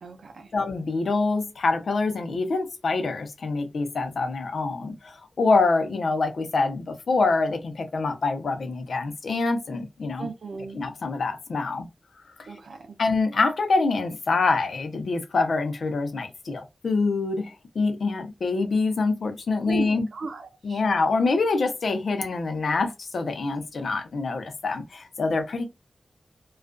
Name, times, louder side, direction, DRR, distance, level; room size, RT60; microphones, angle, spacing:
voice 1, 0.0-0.5 10.2-10.8 12.5-13.0 19.6-20.8, right 3 dB, 80° right, 0.4 m, -36 dB
voice 2, 0.5-10.3 10.8-11.9 13.0-20.1 20.6-25.6, left 3 dB, 80° left, 0.6 m, -25 dB
2.4 x 2.3 x 2.2 m
wide cardioid pair, 105°, 0 cm